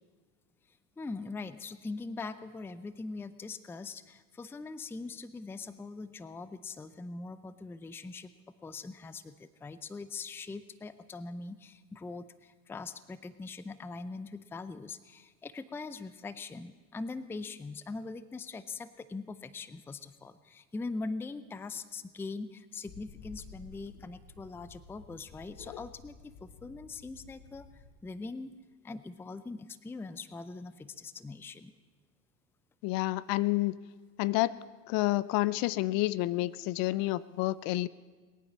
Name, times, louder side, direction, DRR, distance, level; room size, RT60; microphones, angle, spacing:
voice 1, 1.0-8.3 8.6-28.5 28.8-31.7, left 3 dB, 5° left, 15 dB, 0.5 m, -42 dB
sound 1, 22.9-27.9, left 4 dB, 75° left, 4.4 m, -53 dB
voice 2, 32.8-33.7 34.2-34.5 34.9-37.9, left 18 dB, 50° left, 20 dB, 0.6 m, -29 dB
21.0 x 9.3 x 7.3 m, 1.4 s
hypercardioid pair, 95°, 44 cm